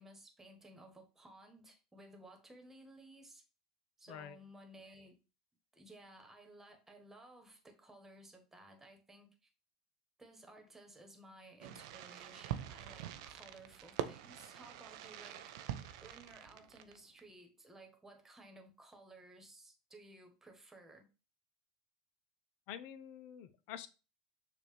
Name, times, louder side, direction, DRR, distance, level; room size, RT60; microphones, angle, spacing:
voice 1, 0.0-3.4 4.0-5.2 5.7-9.5 10.2-15.5 16.0-21.1, right 1 dB, 10° right, 1.3 m, -57 dB
voice 2, 4.1-4.4 22.7-23.9, left 10 dB, 55° left, 0.5 m, -47 dB
Fireworks, 11.6-17.2, right 11 dB, 65° right, 0.4 m, -45 dB
6.6 x 2.5 x 3.2 m
hypercardioid pair, 80°, 3 cm